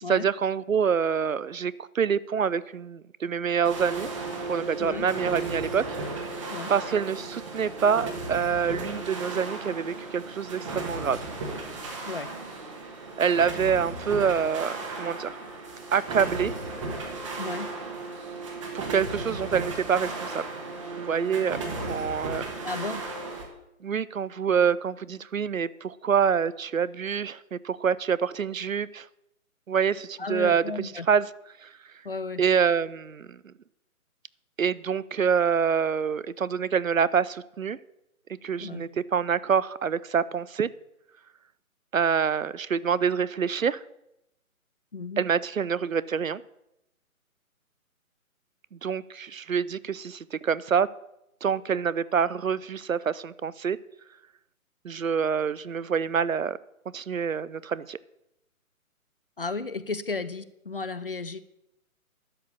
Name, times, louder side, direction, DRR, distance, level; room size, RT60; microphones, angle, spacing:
voice 1, 0.1-4.1 4.5-5.8 6.2-11.2 13.2-15.4 15.9-16.5 18.7-20.4 21.1-21.6 21.9-22.7 23.8-29.1 29.7-31.3 31.6-31.7 32.4-33.5 34.6-37.8 38.4-40.7 41.9-43.8 45.2-46.4 48.7-50.9 51.4-53.8 54.8-56.6 56.9-58.0, right 7 dB, 65° right, 20 dB, 0.6 m, -26 dB
sound 1, 3.6-23.4, right 3 dB, 20° right, 1.4 m, -35 dB
voice 2, 17.4-17.7 22.6-23.0 30.2-31.1 32.0-32.4 38.6-38.8 44.9-45.2 59.4-61.4, left 3 dB, 40° left, 14 dB, 0.5 m, -34 dB
12.5 x 4.6 x 8.5 m, 0.86 s
figure-of-eight pair, 145°, 43 cm